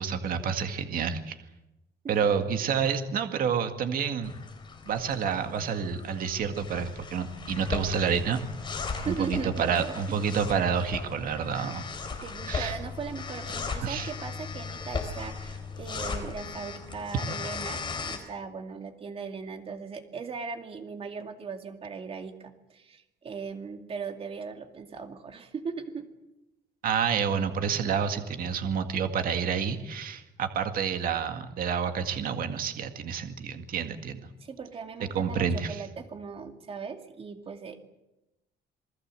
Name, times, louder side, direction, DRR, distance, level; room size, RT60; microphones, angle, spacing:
voice 1, 0.0-1.4 2.1-4.3 4.9-8.4 9.1-11.8 12.5-12.7 13.8-14.1 26.8-34.2 35.1-35.8, right 7 dB, 50° right, 7 dB, 2.0 m, -29 dB
sound 1, 4.2-18.2, left 4 dB, 25° left, 3.9 m, -37 dB
voice 2, 9.0-9.9 11.6-11.7 12.2-26.1 34.4-37.8, right 5 dB, 30° right, 5 dB, 2.5 m, -38 dB
28.0 x 20.0 x 7.7 m, 0.93 s
cardioid pair, 175°, 19 cm